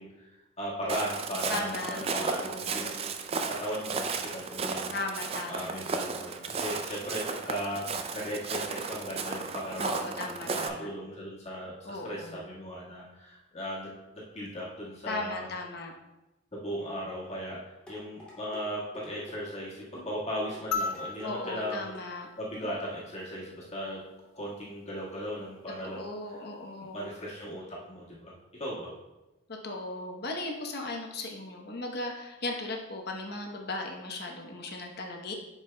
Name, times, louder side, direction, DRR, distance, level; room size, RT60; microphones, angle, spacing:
voice 1, 0.0-3.1 3.5-4.9 5.5-15.5 16.5-21.9 22.4-24.0 24.3-26.1 26.9-28.3 28.6-28.9, equal, 35° left, -7 dB, 1.6 m, -37 dB
Walk footsteps, 0.9-10.7, right 4 dB, 30° right, 0.4 m, -34 dB
voice 2, 1.5-2.8 4.9-5.8 9.8-10.9 11.8-12.5 15.1-15.9 21.2-22.3 25.8-27.1 29.6-35.3, left 2 dB, 55° left, 2 dB, 0.9 m, -37 dB
sound 1, 17.9-18.6 18.9-19.4 19.9-20.1 20.5-21.3 21.6-22.1 22.6-22.8 23.2-23.3, left 1 dB, 5° left, 2.2 m, -47 dB
sound 2, 20.7-23.3 24.9-25.0, left 4 dB, 80° left, 0.4 m, -37 dB
10.5 x 4.8 x 2.2 m, 1.0 s
head